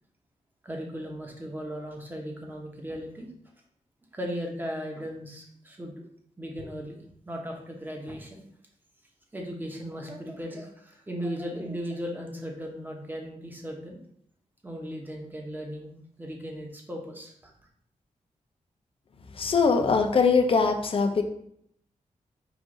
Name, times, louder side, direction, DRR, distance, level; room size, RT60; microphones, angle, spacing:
voice 1, 0.6-3.3 4.1-5.9 6.4-8.4 9.3-14.0 14.6-17.5, equal, 15° right, 0 dB, 1.0 m, -37 dB
voice 2, 19.4-21.2, left 4 dB, 45° left, 5 dB, 0.6 m, -22 dB
4.9 x 2.5 x 3.8 m, 0.69 s
wide cardioid pair, 100°, 13 cm